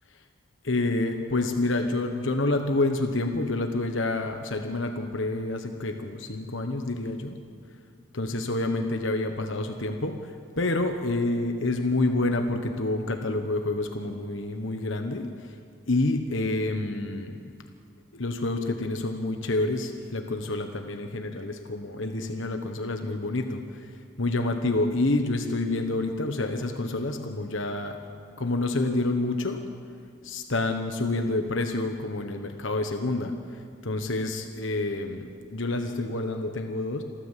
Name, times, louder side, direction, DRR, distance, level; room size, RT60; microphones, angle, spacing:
voice 1, 0.6-7.4 8.1-10.2 10.6-15.3 15.9-17.3 18.1-23.6 24.2-28.0 28.4-29.6 30.2-33.3 33.8-37.0, left 2 dB, 70° left, 5 dB, 1.3 m, -28 dB
28.0 x 13.5 x 7.6 m, 2.2 s
head